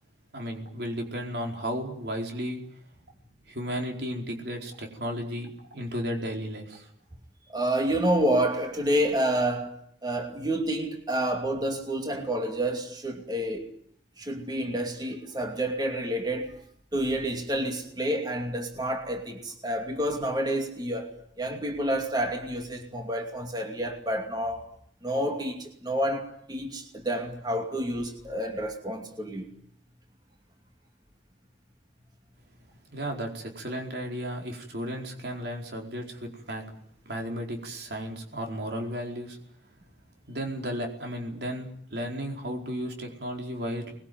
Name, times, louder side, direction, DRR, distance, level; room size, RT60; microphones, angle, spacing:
voice 1, 0.3-2.6 3.5-6.9 32.9-36.6 37.1-39.4 40.3-43.9, equal, 65° right, 2 dB, 4.6 m, -34 dB
voice 2, 7.5-9.7 10.0-13.7 14.2-16.6 16.9-21.1 21.4-24.7 25.0-29.5, right 1 dB, 25° right, 3 dB, 2.6 m, -29 dB
25.0 x 21.0 x 9.4 m, 0.67 s
head